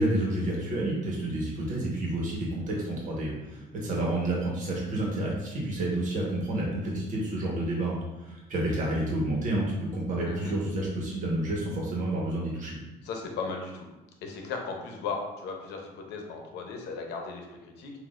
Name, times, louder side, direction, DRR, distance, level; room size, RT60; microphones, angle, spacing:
voice 1, 0.0-9.6 9.9-12.8, right 1 dB, 50° right, -3 dB, 1.3 m, -29 dB
voice 2, 10.2-10.5 13.0-13.9 14.2-17.9, left 4 dB, 85° left, 2 dB, 0.8 m, -36 dB
6.1 x 2.7 x 2.5 m, 1.0 s
cardioid pair, 110°, 17 cm